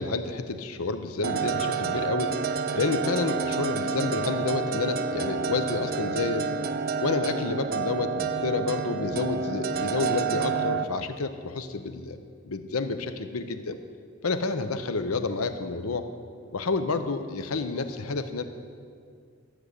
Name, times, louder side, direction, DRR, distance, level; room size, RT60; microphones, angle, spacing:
voice 1, 0.0-2.4 2.7-6.5 7.0-12.2 12.4-13.8 14.2-16.1 16.5-18.4, left 3 dB, 80° left, 9 dB, 0.8 m, -29 dB
sound 1, 1.2-10.8, right 5 dB, 45° right, 0.4 m, -29 dB
13.5 x 6.3 x 8.3 m, 2.2 s
head